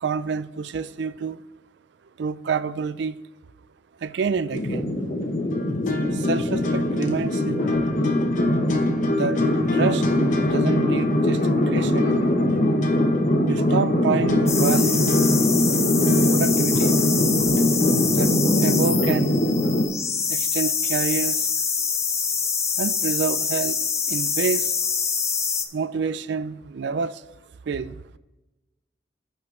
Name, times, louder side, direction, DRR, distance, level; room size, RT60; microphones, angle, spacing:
voice 1, 0.0-1.4 2.2-3.1 4.0-4.9 6.2-7.7 9.1-9.4 9.7-10.0 10.4-12.1 13.5-15.1 16.1-17.0 18.2-18.3 18.6-19.4 20.3-21.4 22.8-23.8 24.1-24.7 25.7-27.2 27.7-27.9, right 5 dB, 75° right, 0.4 m, -27 dB
sound 1, 4.5-19.9, left 1 dB, 45° left, 0.9 m, -21 dB
sound 2, 14.5-25.6, left 5 dB, 15° left, 0.5 m, -25 dB
5.9 x 5.6 x 6.3 m
head